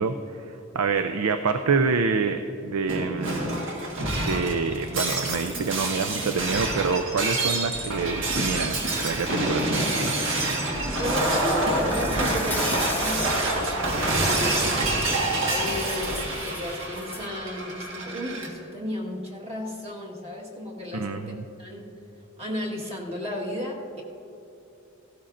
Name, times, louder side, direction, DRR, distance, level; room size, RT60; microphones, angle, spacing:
voice 1, 0.0-3.5 4.2-10.1 20.9-21.4, right 4 dB, 80° right, 8 dB, 0.5 m, -27 dB
Shatter, 2.9-18.5, right 2 dB, 60° right, 1.6 m, -27 dB
voice 2, 11.0-14.7 15.3-21.2 21.6-21.9 22.4-24.0, left 1 dB, 30° right, -2 dB, 1.6 m, -34 dB
Insect, 11.7-13.5 13.9-14.2 15.5-17.3, left 3 dB, 10° left, 0.4 m, -38 dB
16.5 x 12.5 x 2.6 m, 2.9 s
head